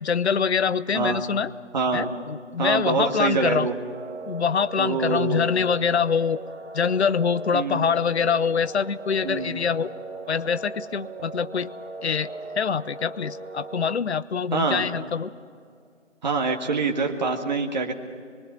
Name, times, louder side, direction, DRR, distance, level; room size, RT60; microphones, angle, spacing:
voice 1, 0.0-1.5 1.9-3.7 4.3-6.4 6.7-9.9 10.3-11.7 12.0-15.3, left 6 dB, 60° left, 17 dB, 0.7 m, -24 dB
voice 2, 0.9-1.3 1.7-2.1 2.6-3.8 4.8-5.5 7.5-7.9 9.2-9.6 14.5-14.9 16.2-17.9, right 4 dB, 35° right, 2 dB, 1.9 m, -25 dB
sound 1, 3.9-14.0, right 3 dB, 65° right, 1.4 m, -38 dB
24.5 x 23.5 x 6.2 m, 2.2 s
figure-of-eight pair, 160°, 37 cm